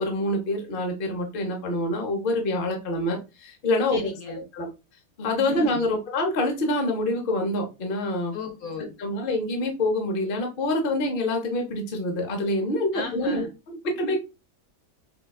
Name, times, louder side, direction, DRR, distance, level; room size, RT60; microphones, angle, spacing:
voice 1, 0.0-4.1 4.5-4.7 5.2-8.3 9.0-14.2, left 1 dB, 45° left, 0.7 m, -26 dB
voice 2, 3.9-4.4 5.5-5.8 8.3-8.9 12.9-13.5, left 5 dB, 65° left, 1.1 m, -35 dB
4.9 x 2.2 x 2.3 m
omnidirectional pair, 1.8 m